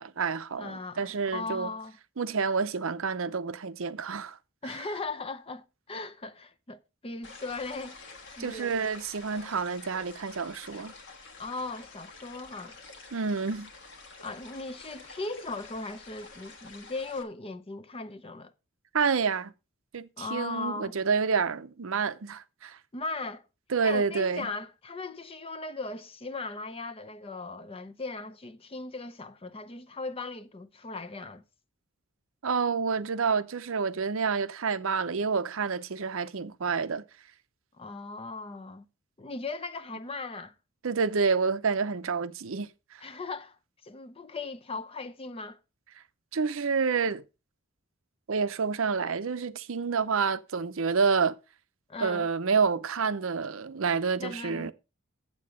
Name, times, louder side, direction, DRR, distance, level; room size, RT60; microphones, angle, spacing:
voice 1, 0.0-1.7 2.2-4.4 8.4-10.9 13.1-13.7 18.9-19.5 19.9-22.8 23.7-24.5 32.4-37.0 40.8-43.0 46.3-47.2 48.3-51.3 52.0-54.7, right 5 dB, 65° right, 0.6 m, -28 dB
voice 2, 0.6-2.0 4.6-8.0 8.4-8.7 11.4-12.8 14.2-18.5 20.2-20.9 22.9-23.4 23.8-31.4 37.8-38.9 39.2-40.5 43.0-45.6 51.9-52.3 54.2-54.7, left 3 dB, 25° left, 0.6 m, -38 dB
sound 1, 7.2-17.2, left 3 dB, 55° left, 1.5 m, -49 dB
8.6 x 7.7 x 4.9 m
head